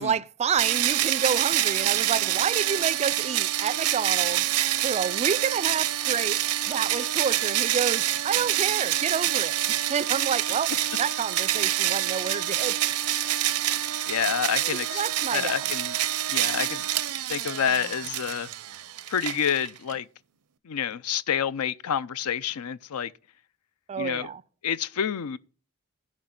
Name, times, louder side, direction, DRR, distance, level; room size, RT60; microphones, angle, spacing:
voice 1, 0.0-4.5 4.8-6.4 6.7-9.6 9.9-10.7 11.0-12.8 14.6-15.6 23.9-24.4, right 6 dB, 30° right, 0.3 m, -29 dB
sound 1, 0.6-19.9, right 13 dB, 90° right, 0.6 m, -26 dB
voice 2, 14.1-15.0 15.3-16.0 16.3-16.8 17.3-18.5 19.1-20.1 20.6-23.1 24.0-24.3 24.6-25.4, left 8 dB, 80° left, 0.5 m, -28 dB
15.0 x 5.2 x 3.8 m
head